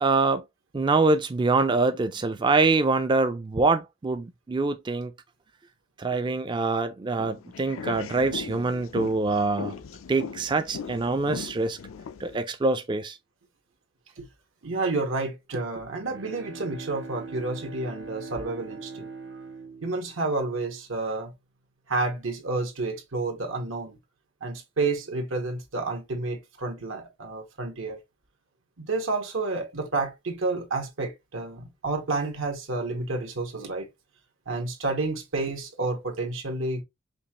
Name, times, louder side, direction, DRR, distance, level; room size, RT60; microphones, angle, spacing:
voice 1, 0.0-0.4 0.7-5.1 6.0-9.7 10.1-11.8 12.2-13.2, right 3 dB, 25° right, 0.3 m, -24 dB
sound 1, 7.1-12.4, left 5 dB, 90° left, 0.4 m, -38 dB
voice 2, 14.6-19.1 19.8-21.3 21.9-24.0 24.4-28.0 28.8-33.9 34.5-36.8, right 3 dB, 80° right, 1.3 m, -30 dB
Bowed string instrument, 15.8-21.1, right 4 dB, 60° right, 0.8 m, -42 dB
5.2 x 2.4 x 2.9 m
head